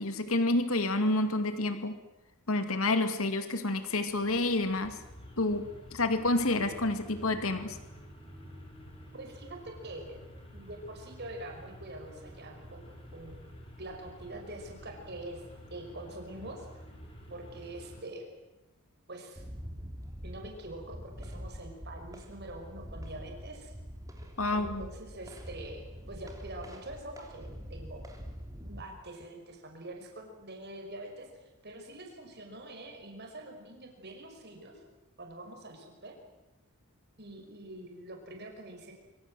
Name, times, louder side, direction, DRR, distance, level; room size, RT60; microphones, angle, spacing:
voice 1, 0.0-2.0 2.5-5.0 5.4-7.8 24.4-24.9, left 2 dB, 70° left, 9 dB, 2.4 m, -29 dB
sound 1, 4.0-18.0, equal, 25° left, 5.1 m, -50 dB
voice 2, 9.1-10.2 10.5-13.4 13.8-15.4 15.7-16.7 17.3-18.3 19.1-19.4 20.2-23.7 24.5-28.1 28.6-31.3 31.6-34.8 35.2-36.1 37.2-38.9, right 1 dB, 50° right, 3 dB, 5.8 m, -45 dB
sound 2, 19.4-28.8, equal, 15° right, 3.3 m, -45 dB
25.5 x 24.5 x 7.8 m, 1.0 s
head